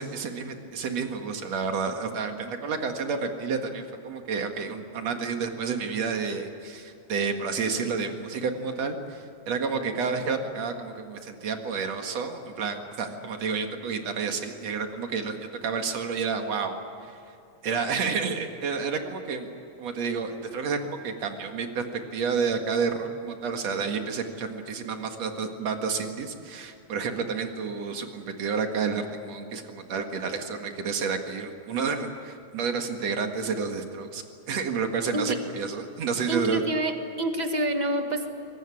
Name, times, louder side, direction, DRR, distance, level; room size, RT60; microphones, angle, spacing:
voice 1, 0.0-17.1 17.6-19.5 19.8-36.6, right 5 dB, 60° right, 5 dB, 2.9 m, -30 dB
voice 2, 36.3-38.3, right 1 dB, 25° right, 5 dB, 0.9 m, -27 dB
23.5 x 20.5 x 9.8 m, 2.5 s
omnidirectional pair, 3.4 m